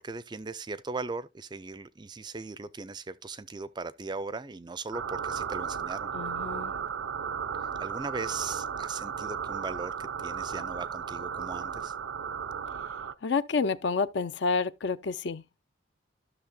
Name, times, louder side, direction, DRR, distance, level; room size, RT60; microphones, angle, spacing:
voice 1, 0.0-6.1 7.6-11.9, right 3 dB, 20° right, 0.4 m, -38 dB
sound 1, 4.9-13.1, right 7 dB, 80° right, 0.5 m, -35 dB
voice 2, 6.1-6.7 13.2-15.6, left 4 dB, 60° left, 0.5 m, -29 dB
13.0 x 6.4 x 2.2 m
head